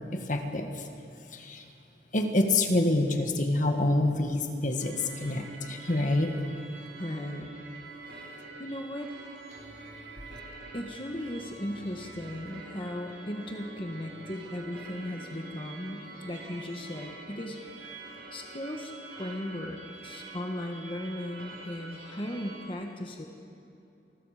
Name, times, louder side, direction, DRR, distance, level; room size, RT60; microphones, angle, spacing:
voice 1, 0.1-0.9 1.3-1.6 2.1-6.4, left 2 dB, 45° left, 5 dB, 1.6 m, -27 dB
sound 1, 4.8-22.7, right 3 dB, 70° right, 4.1 m, -46 dB
voice 2, 7.0-7.5 8.6-9.1 10.7-17.6 18.3-18.9 19.2-23.3, left 1 dB, 30° left, 2 dB, 1.5 m, -37 dB
28.0 x 20.5 x 5.1 m, 2.8 s
head